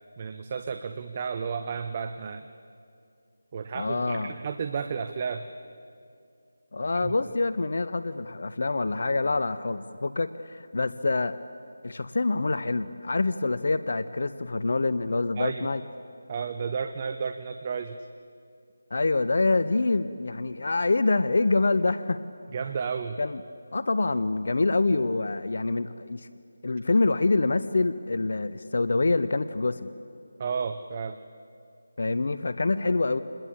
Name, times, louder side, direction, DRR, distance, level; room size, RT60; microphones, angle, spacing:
voice 1, 0.2-2.4 3.5-5.5 7.0-7.1 15.4-15.7 16.3-18.0 22.5-23.2 30.4-31.2, right 6 dB, 30° right, 9 dB, 0.9 m, -32 dB
voice 2, 3.7-4.4 6.7-11.4 11.8-15.8 18.9-22.2 23.2-23.4 23.7-26.3 26.6-29.9 32.0-33.2, left 3 dB, 60° left, 13 dB, 0.8 m, -26 dB
27.5 x 21.5 x 8.6 m, 2.4 s
figure-of-eight pair, 160°, 0 cm